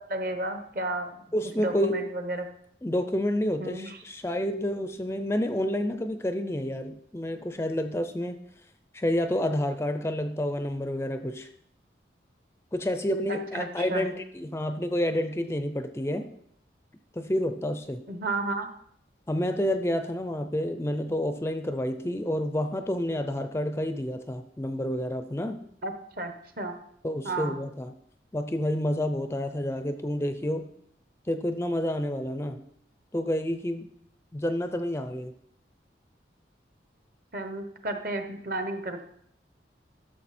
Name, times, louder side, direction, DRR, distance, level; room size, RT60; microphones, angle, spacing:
voice 1, 0.0-1.2 1.6-2.5 3.6-4.0 13.3-14.1 18.1-18.7 25.8-26.7 27.2-27.6 37.3-39.0, right 2 dB, 50° right, 7 dB, 1.1 m, -32 dB
voice 2, 1.3-2.0 2.8-8.4 8.9-11.5 12.7-16.3 17.2-18.0 19.3-25.6 27.0-27.9 28.3-30.7 31.3-32.6 33.1-33.9 34.3-35.3, left 1 dB, 15° left, 9 dB, 0.4 m, -29 dB
12.0 x 6.7 x 4.3 m, 0.68 s
head